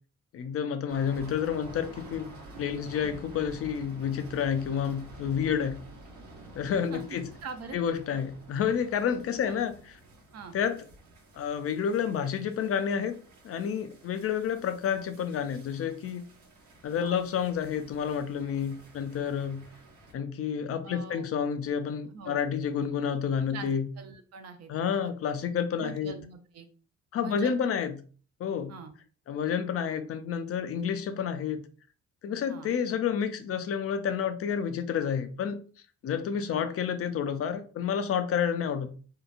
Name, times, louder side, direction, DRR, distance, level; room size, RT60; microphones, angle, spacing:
voice 1, 0.3-2.3 2.6-5.8 6.6-7.3 7.7-10.0 10.5-10.8 11.3-13.1 13.4-16.2 16.8-19.6 20.1-23.9 24.7-26.1 27.1-28.0 28.4-28.7 29.3-31.6 32.2-35.6 36.0-38.9, left 7 dB, 50° left, 9 dB, 0.4 m, -29 dB
sound 1, 0.9-20.1, right 1 dB, 80° right, 1.0 m, -50 dB
voice 2, 6.9-7.8 8.1-8.2 9.4-9.5 10.3-10.5 17.0-17.2 20.8-21.3 22.1-22.4 23.5-23.7 24.0-25.1 25.8-26.7 27.2-27.7 28.7-28.9 32.5-32.7 36.5-36.6, right 5 dB, 55° right, 7 dB, 0.5 m, -43 dB
2.8 x 2.2 x 2.4 m, 0.40 s
cardioid pair, 90°, 30 cm